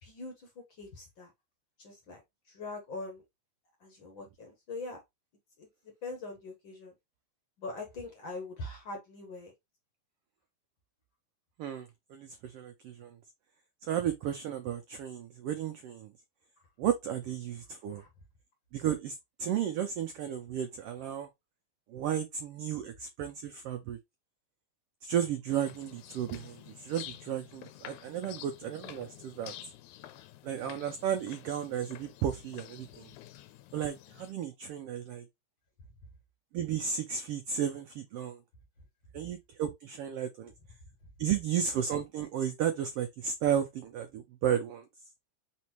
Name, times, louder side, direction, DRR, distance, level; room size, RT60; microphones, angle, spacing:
voice 1, 0.0-1.3 1.8-3.2 3.8-5.0 5.6-6.9 7.6-9.5 17.9-18.1, left 3 dB, 55° left, 1.4 m, -43 dB
voice 2, 11.6-13.2 13.9-16.1 16.8-18.0 18.7-21.3 21.9-24.0 25.0-29.5 30.4-33.1 33.7-35.2 36.5-38.4 39.1-40.5 41.2-44.8, right 9 dB, 85° right, 1.3 m, -33 dB
sound 1, 25.5-34.3, left 14 dB, 90° left, 2.0 m, -49 dB
4.2 x 4.2 x 2.9 m
omnidirectional pair, 3.3 m